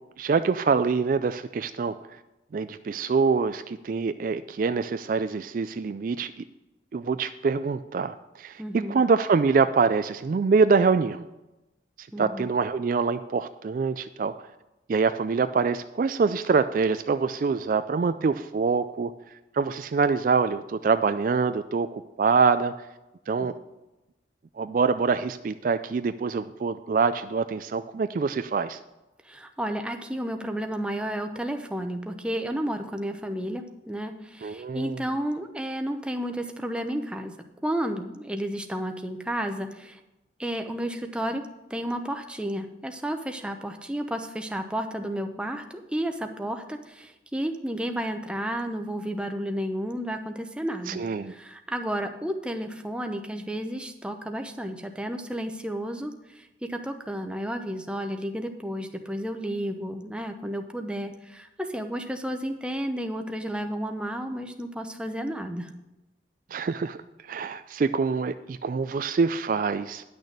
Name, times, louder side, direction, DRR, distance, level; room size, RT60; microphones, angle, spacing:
voice 1, 0.2-2.2 2.5-6.4 6.9-11.3 12.0-14.4 14.9-19.1 19.5-22.7 23.3-23.5 24.6-28.8 34.4-35.0 50.9-51.3 66.5-67.0 67.3-70.0, right 5 dB, 45° right, 11 dB, 0.3 m, -25 dB
voice 2, 8.6-9.0 12.1-12.5 23.4-23.5 29.2-37.3 37.6-40.0 40.4-51.0 51.3-65.7, equal, 5° right, 5 dB, 0.7 m, -32 dB
10.5 x 6.4 x 6.6 m, 1.0 s
head